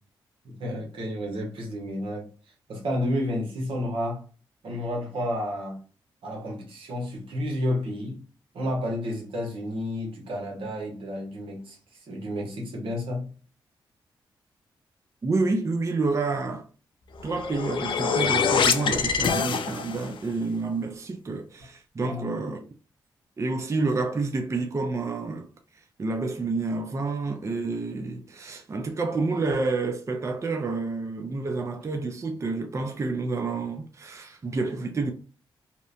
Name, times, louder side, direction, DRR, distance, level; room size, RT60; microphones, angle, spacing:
voice 1, 0.4-2.3 2.7-4.2 4.6-5.8 6.2-8.2 8.5-11.8 12.1-13.3 22.0-22.4, left 1 dB, 80° right, 0.9 m, -31 dB
voice 2, 15.2-16.7 17.2-22.7 23.4-25.5 26.0-35.1, right 3 dB, 35° right, 0.4 m, -29 dB
sound 1, 17.2-20.2, left 6 dB, 65° left, 0.4 m, -25 dB
2.8 x 2.1 x 2.4 m
cardioid pair, 60°, 9 cm